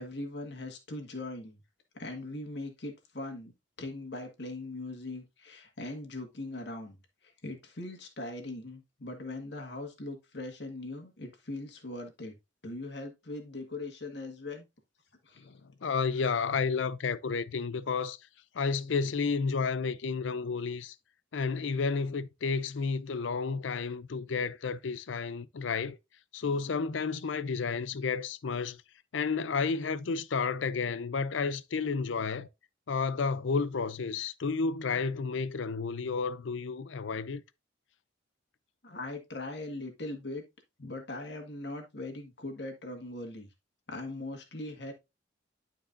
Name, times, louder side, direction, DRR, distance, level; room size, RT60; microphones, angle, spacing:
voice 1, 0.0-1.6 1.9-3.5 3.8-7.0 7.2-12.4 12.6-14.7 15.2-15.5 38.8-40.4 40.8-43.5 43.9-44.9, left 2 dB, 60° left, 1.6 m, -40 dB
voice 2, 15.8-18.2 18.5-20.9 21.3-26.0 26.3-28.8 29.1-32.5 32.9-37.4, left 5 dB, 80° left, 0.5 m, -31 dB
11.5 x 4.7 x 2.6 m
head